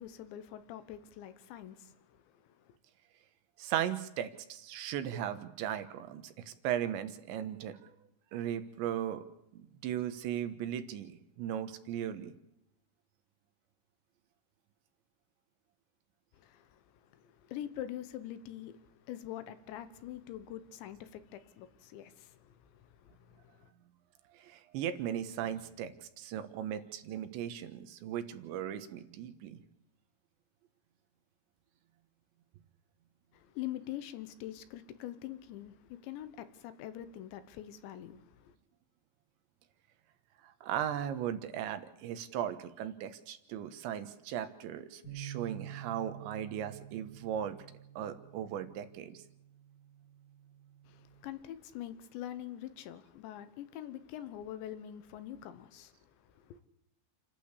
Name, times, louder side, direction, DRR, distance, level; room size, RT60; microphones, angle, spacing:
voice 1, 0.0-2.7 16.3-23.7 33.3-38.5 50.9-56.6, left 12 dB, 80° left, 3.3 m, -45 dB
voice 2, 3.6-7.8 8.3-9.2 9.5-12.3 24.4-29.6 40.6-47.6 48.0-49.2, right 10 dB, 80° right, 3.5 m, -37 dB
Bass guitar, 45.0-51.3, right 10 dB, 45° left, 8.6 m, -49 dB
28.5 x 12.0 x 8.3 m
omnidirectional pair, 5.3 m